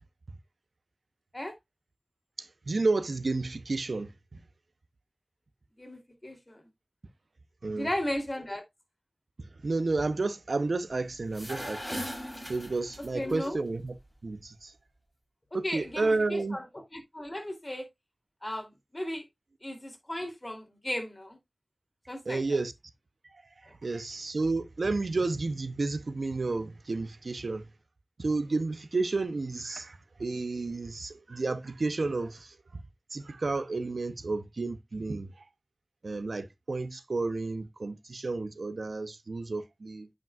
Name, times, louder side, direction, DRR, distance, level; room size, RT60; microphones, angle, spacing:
voice 1, 2.4-4.4 7.6-7.9 9.4-12.1 12.5-14.0 14.2-14.7 15.5-16.6 22.2-22.7 23.3-27.7 28.2-32.8 33.1-35.5 36.0-40.1, right 3 dB, 75° right, 0.6 m, -31 dB
voice 2, 5.8-6.6 7.7-8.6 13.1-13.6 15.6-16.6 16.9-17.9 18.4-19.2 19.6-21.4 22.1-22.4, left 1 dB, 30° left, 2.8 m, -35 dB
sound 1, 11.2-13.3, equal, ahead, 5.4 m, -38 dB
9.3 x 5.2 x 2.3 m
wide cardioid pair, 45°, 0 cm